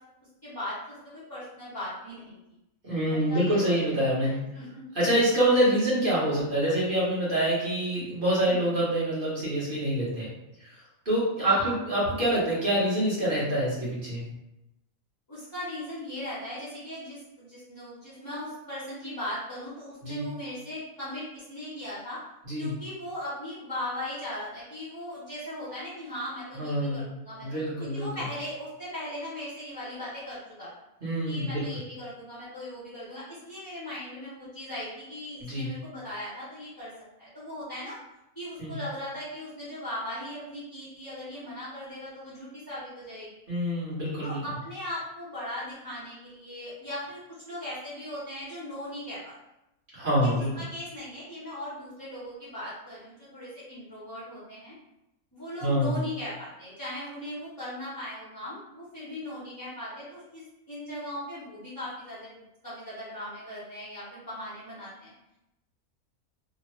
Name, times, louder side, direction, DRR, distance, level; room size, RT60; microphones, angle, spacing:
voice 1, 0.4-2.4 3.1-3.8 4.2-4.9 8.5-8.8 11.4-11.7 15.3-22.2 22.6-30.7 31.2-36.9 37.2-38.0 38.3-43.4 44.2-47.2 47.4-49.4 50.2-54.7 55.3-65.1, left 1 dB, 20° left, -10 dB, 0.7 m, -38 dB
voice 2, 2.8-4.4 4.9-10.3 10.6-14.2 20.0-20.2 22.4-22.7 26.5-27.0 27.4-28.1 31.0-31.6 35.4-35.7 38.6-38.7 43.5-44.4 49.9-50.5 55.6-56.0, right 1 dB, 40° right, -8 dB, 1.3 m, -26 dB
3.0 x 2.2 x 3.0 m, 0.89 s
omnidirectional pair, 1.5 m